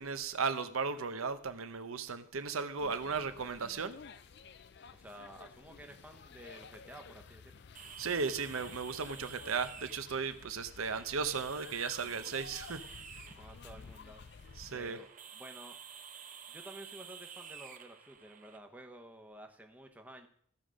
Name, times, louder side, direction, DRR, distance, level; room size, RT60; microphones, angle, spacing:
voice 1, 0.0-3.9 8.0-12.8 14.6-15.0, right 5 dB, 80° right, 10 dB, 0.7 m, -36 dB
sound 1, 2.8-14.9, left 5 dB, 50° left, 0.5 m, -53 dB
voice 2, 4.9-7.6 13.2-14.2 14.7-15.8 16.5-20.3, right 1 dB, 5° right, 4 dB, 0.8 m, -52 dB
sound 2, 7.7-18.6, right 7 dB, 40° right, 0.8 m, -51 dB
14.5 x 5.2 x 6.3 m, 0.63 s
head